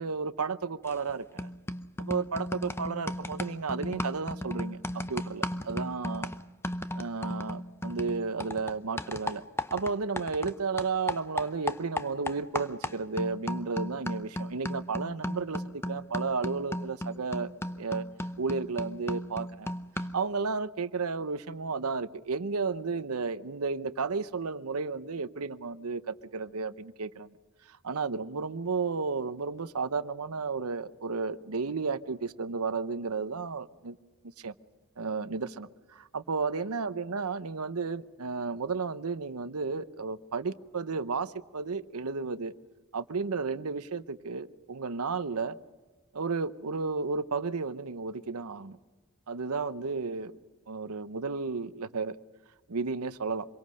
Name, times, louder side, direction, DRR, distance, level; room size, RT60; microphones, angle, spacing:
voice 1, 0.0-1.5 2.0-6.3 6.9-9.4 9.7-17.5 17.8-18.0 18.4-19.7 20.1-27.3 27.7-34.0 34.4-34.5 35.0-42.5 42.9-45.6 46.1-48.8 49.3-50.4 50.7-52.2 52.7-53.5, right 4 dB, 85° right, 13 dB, 0.8 m, -33 dB
sound 1, 0.9-1.1 1.4-10.5 10.8-20.3, left 1 dB, 10° left, 0.7 m, -36 dB
26.0 x 23.0 x 6.4 m, 1.3 s
head